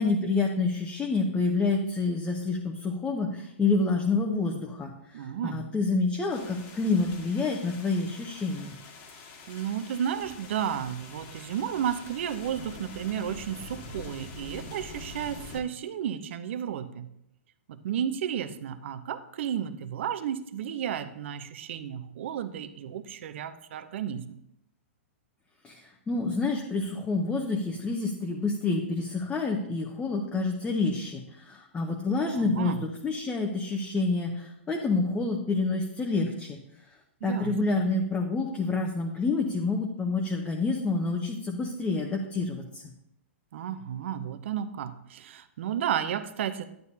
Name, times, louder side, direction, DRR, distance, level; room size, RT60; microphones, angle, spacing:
voice 1, 0.0-8.7 25.6-36.6 37.2-42.8, left 3 dB, 15° left, 1 dB, 1.0 m, -28 dB
voice 2, 5.1-5.7 9.5-17.1 17.7-24.4 32.3-32.8 37.2-37.8 43.5-46.6, right 9 dB, 60° right, 12 dB, 0.7 m, -33 dB
sound 1, 6.3-15.6, left 2 dB, 40° left, 1.7 m, -45 dB
11.0 x 9.1 x 2.8 m, 0.78 s
hypercardioid pair, 125°, 7 cm